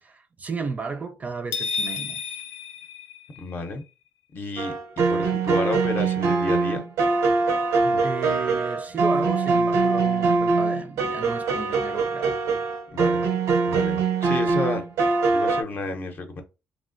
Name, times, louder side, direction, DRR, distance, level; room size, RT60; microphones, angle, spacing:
voice 1, 0.0-2.4 8.0-12.3, right 4 dB, 30° right, 0.4 m, -33 dB
sound 1, 1.5-3.7, left 5 dB, 90° left, 0.5 m, -31 dB
voice 2, 3.4-3.8 4.3-6.9 7.8-8.0 12.9-13.2 13.7-14.8 15.3-16.4, left 2 dB, 40° left, 0.6 m, -31 dB
sound 2, 4.6-15.6, right 4 dB, 85° right, 0.6 m, -23 dB
3.1 x 2.5 x 2.5 m
cardioid pair, 105°, 5 cm